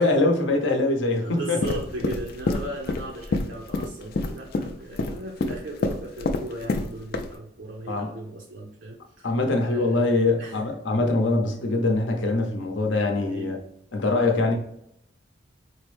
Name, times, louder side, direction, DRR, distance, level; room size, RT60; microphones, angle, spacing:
voice 1, 0.0-1.8 7.9-8.1 9.2-13.6 13.9-14.5, left 2 dB, 75° left, 3 dB, 0.7 m, -23 dB
voice 2, 1.2-9.3 9.6-10.6 12.9-13.6, right 2 dB, 75° right, -1 dB, 0.6 m, -38 dB
sound 1, 1.6-6.9 7.1-7.3, left 3 dB, 50° left, 0.3 m, -27 dB
4.2 x 2.0 x 3.1 m, 0.77 s
head